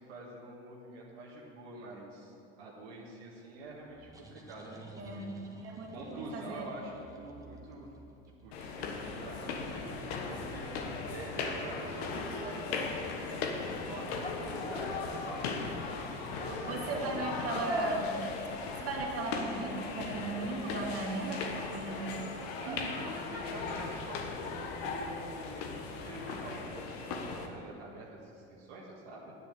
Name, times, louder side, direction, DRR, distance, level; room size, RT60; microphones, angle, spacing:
voice 1, 0.0-5.3 5.9-7.9 8.4-10.7 11.1-15.5 16.1-17.6 22.6-29.3, right 2 dB, 80° right, -4 dB, 1.9 m, -46 dB
sound 1, 3.6-9.1, right 2 dB, 10° right, 1.6 m, -53 dB
voice 2, 5.0-6.7 16.6-18.1 18.8-23.0, right 3 dB, 50° right, -2 dB, 2.5 m, -37 dB
sound 2, 8.5-27.5, left 4 dB, 75° left, 1.4 m, -38 dB
sound 3, 14.2-15.3 16.3-16.9 21.1-21.3 22.5-22.6 24.8-24.9 25.7-26.0, left 3 dB, 20° left, 1.6 m, -45 dB
10.0 x 7.8 x 7.3 m, 2.7 s
hypercardioid pair, 85°, 31 cm